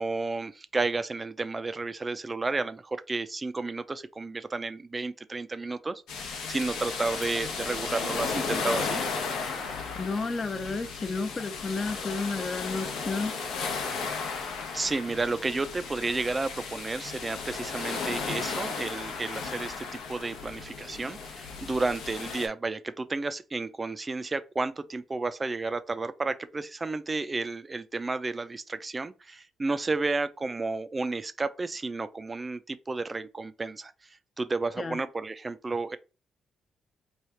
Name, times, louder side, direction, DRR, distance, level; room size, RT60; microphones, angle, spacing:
voice 1, 0.0-9.0 14.7-33.9 34.4-36.0, right 3 dB, 25° right, 0.4 m, -32 dB
sound 1, 6.1-22.5, left 5 dB, 85° left, 0.8 m, -35 dB
voice 2, 10.0-13.3 34.8-35.0, left 4 dB, 30° left, 0.5 m, -32 dB
3.2 x 2.4 x 4.3 m
cardioid pair, 90°, 0 cm